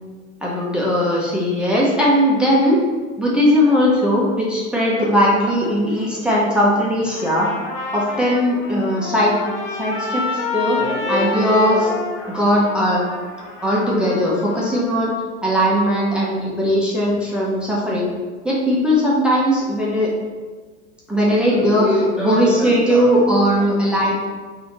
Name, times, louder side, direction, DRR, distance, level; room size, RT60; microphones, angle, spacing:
voice 1, 0.4-2.8 3.2-7.5 7.9-9.4 9.7-12.0 12.3-13.1 13.6-15.1 15.4-18.1 18.4-20.1 21.1-24.1, equal, 5° right, -6 dB, 0.8 m, -18 dB
Trumpet, 7.1-15.1, left 3 dB, 65° left, 1.3 m, -29 dB
4.2 x 2.6 x 4.1 m, 1.4 s
hypercardioid pair, 105°, 36 cm